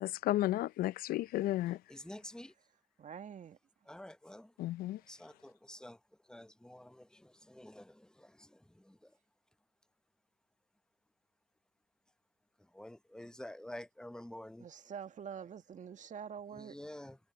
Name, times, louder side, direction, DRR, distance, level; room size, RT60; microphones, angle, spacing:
voice 1, 0.0-1.8 4.6-5.0, left 15 dB, 75° left, 0.6 m, -33 dB
voice 2, 1.9-2.5 3.9-4.5 5.1-6.0 6.3-8.5 8.9-9.0 12.7-14.6 16.6-17.2, left 1 dB, 5° left, 1.0 m, -49 dB
voice 3, 3.0-3.6 14.6-16.8, right 7 dB, 55° right, 1.9 m, -46 dB
hypercardioid pair, 55°, 16 cm